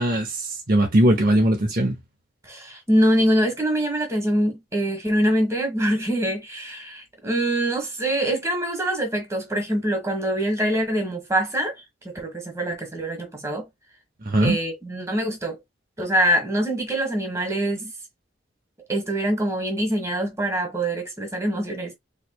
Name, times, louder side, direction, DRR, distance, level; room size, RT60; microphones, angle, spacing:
voice 1, 0.0-2.0 14.3-14.6, right 1 dB, 45° right, 0.7 m, -20 dB
voice 2, 2.4-11.8 12.0-13.7 14.4-15.6 16.0-17.9 18.9-21.9, right 1 dB, 15° right, 1.4 m, -24 dB
4.4 x 3.2 x 2.3 m
head